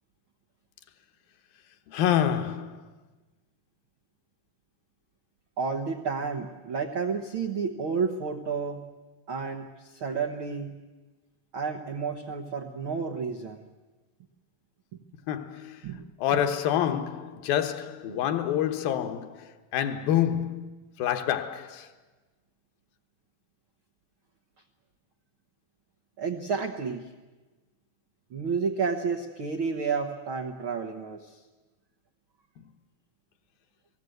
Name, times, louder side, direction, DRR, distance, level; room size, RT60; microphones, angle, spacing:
voice 1, 1.9-2.8 15.3-15.8 16.2-19.5 19.7-20.7 21.0-21.9, left 10 dB, 75° left, 2.8 m, -27 dB
voice 2, 5.6-8.9 9.3-10.7 11.5-13.6 15.8-16.0 16.3-16.4 18.1-18.2 26.2-27.1 28.3-31.4, right 5 dB, 90° right, 1.1 m, -31 dB
29.0 x 18.5 x 7.9 m
omnidirectional pair, 4.3 m